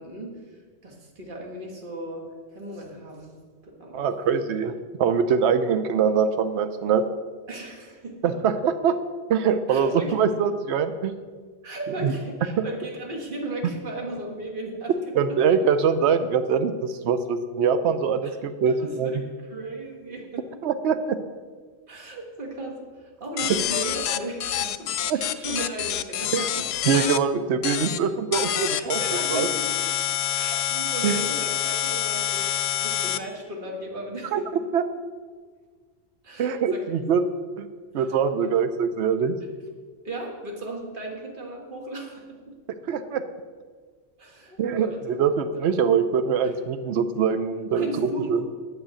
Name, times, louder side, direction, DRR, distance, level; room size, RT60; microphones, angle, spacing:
voice 1, 0.0-3.4 3.6-4.4 7.5-8.3 9.7-10.2 11.6-15.4 18.2-18.4 18.8-20.5 21.9-26.7 28.7-29.7 30.3-34.4 36.2-36.9 38.0-38.1 38.4-38.5 40.0-42.5 44.2-45.0 47.7-48.5, right 1 dB, 50° right, 0 dB, 1.8 m, -36 dB
voice 2, 3.9-7.0 8.2-9.0 9.3-11.1 12.0-12.1 12.6-12.7 15.1-19.1 20.6-21.2 23.5-23.6 25.1-25.2 26.3-26.4 26.8-29.0 29.3-29.5 31.0-31.2 34.3-34.4 34.7-34.9 36.4-37.2 37.6-37.7 37.9-39.4 42.9-43.2 44.6-48.4, right 6 dB, 80° right, 10 dB, 0.9 m, -23 dB
sound 1, 23.4-27.2 27.6-28.0 28.3-33.2, left 10 dB, 75° left, 0.8 m, -27 dB
8.8 x 6.8 x 8.1 m, 1.5 s
omnidirectional pair, 1.1 m